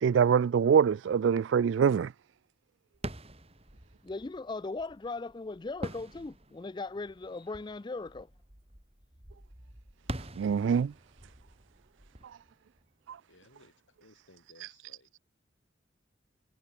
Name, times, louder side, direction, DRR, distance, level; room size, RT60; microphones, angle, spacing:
voice 1, 0.0-2.1 10.4-10.9 13.1-13.2, right 7 dB, 70° right, 0.3 m, -24 dB
sound 1, 2.9-13.5, right 1 dB, 30° right, 4.0 m, -46 dB
voice 2, 4.0-8.3, left 3 dB, 25° left, 0.4 m, -38 dB
voice 3, 13.3-15.1, left 2 dB, 80° left, 5.8 m, -60 dB
head